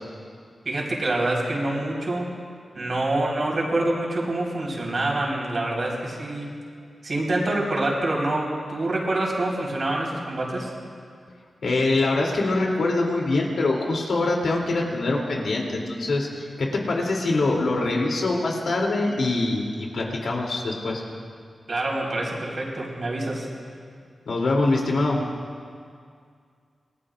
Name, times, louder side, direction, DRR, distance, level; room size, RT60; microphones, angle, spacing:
voice 1, 0.6-2.3 2.7-6.6 7.0-10.7 21.7-23.5, right 2 dB, 55° right, -3 dB, 4.3 m, -26 dB
voice 2, 11.6-21.0 24.3-25.2, left 2 dB, 80° left, -2 dB, 3.1 m, -24 dB
27.0 x 20.5 x 2.5 m, 2.2 s
wide cardioid pair, 95°, 0 cm